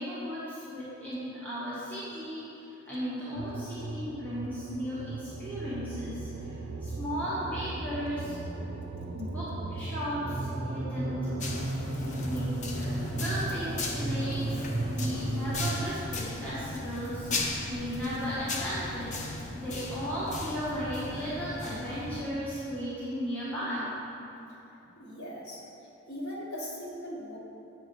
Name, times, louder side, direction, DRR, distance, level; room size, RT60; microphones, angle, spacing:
voice 1, 0.0-2.4 2.9-6.5 6.8-8.4 9.1-11.5 11.9-14.6 14.8-19.1 19.5-23.9, equal, 10° left, -12 dB, 1.5 m, -35 dB
sound 1, 3.4-15.9, right 2 dB, 55° right, 0.5 m, -35 dB
sound 2, 11.4-22.3, left 2 dB, 35° left, 0.7 m, -37 dB
voice 2, 25.0-25.6 26.1-27.4, equal, 80° left, -5 dB, 1.4 m, -39 dB
8.0 x 4.8 x 5.4 m, 3.0 s
head